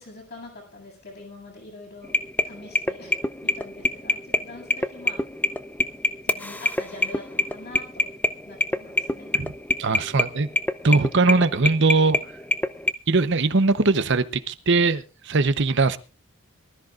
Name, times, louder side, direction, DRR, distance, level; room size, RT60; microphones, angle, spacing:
voice 1, 0.0-2.1 2.4-3.1 3.4-5.2 6.2-8.1 8.5-9.3, left 2 dB, 50° left, 7.7 m, -43 dB
sound 1, 2.0-12.9, left 2 dB, 10° left, 0.6 m, -25 dB
voice 2, 9.8-10.5 10.8-12.3 13.1-16.0, right 3 dB, 55° right, 0.9 m, -21 dB
23.5 x 13.5 x 2.5 m
head